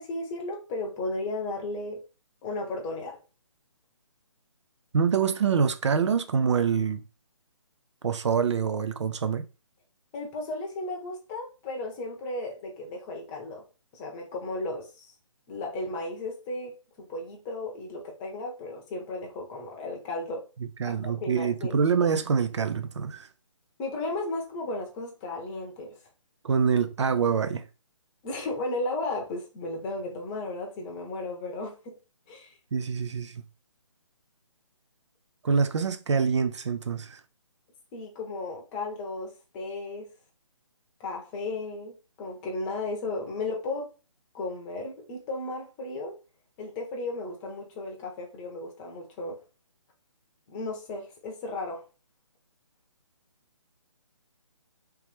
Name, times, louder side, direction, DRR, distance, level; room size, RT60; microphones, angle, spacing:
voice 1, 0.0-2.0 2.4-3.2 10.1-13.6 13.9-15.1 15.5-20.4 20.8-21.7 23.8-25.9 28.2-32.0 32.3-32.5 37.9-40.1 41.0-43.9 44.3-46.2 46.6-49.4 50.5-51.8, left 2 dB, 15° left, 0.7 m, -35 dB
voice 2, 4.9-7.0 8.0-9.5 20.8-23.3 26.4-27.6 32.7-33.4 35.4-37.2, right 6 dB, 60° right, 0.4 m, -25 dB
3.1 x 3.1 x 3.3 m
hypercardioid pair, 155°, 17 cm